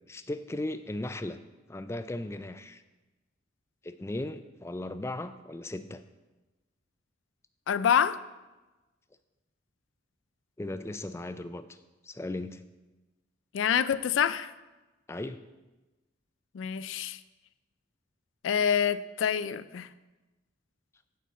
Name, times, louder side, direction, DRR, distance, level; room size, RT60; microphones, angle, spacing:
voice 1, 0.1-1.4 1.7-2.8 3.8-6.0 10.6-11.8 12.0-12.6 15.1-15.4, left 1 dB, 15° left, 11 dB, 0.3 m, -37 dB
voice 2, 7.7-8.2 13.5-14.5 16.5-17.2 18.4-19.9, left 8 dB, 85° left, 15 dB, 0.4 m, -26 dB
9.4 x 4.3 x 7.3 m, 1.1 s
head